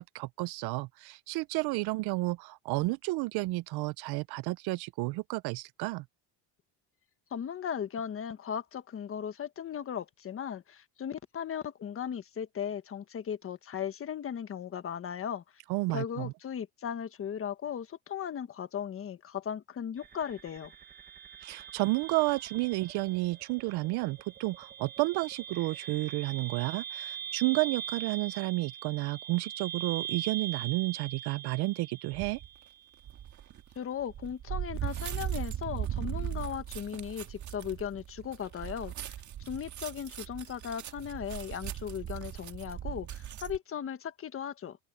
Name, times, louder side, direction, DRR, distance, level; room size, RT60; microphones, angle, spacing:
voice 1, 0.0-6.0 15.7-16.3 21.4-32.4, right 22 dB, 60° right, 0.6 m, -31 dB
voice 2, 7.3-15.4 15.9-20.7 33.7-39.1 39.4-44.8, left 8 dB, 30° left, 1.4 m, -37 dB
sound 1, 20.0-33.0, right 9 dB, 20° right, 1.3 m, -42 dB
sound 2, 32.1-32.5 33.0-43.6, right 11 dB, 40° right, 1.9 m, -38 dB
cardioid pair, 145°, 44 cm